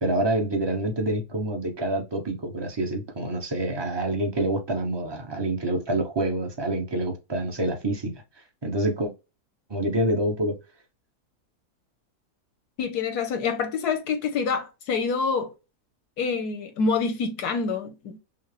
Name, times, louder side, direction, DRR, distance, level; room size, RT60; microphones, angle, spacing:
voice 1, 0.0-8.2 8.6-9.1 9.7-10.6, right 1 dB, 25° right, 0.7 m, -27 dB
voice 2, 12.8-15.5 16.2-18.2, left 5 dB, 85° left, 1.5 m, -26 dB
5.8 x 2.0 x 3.1 m
omnidirectional pair, 1.6 m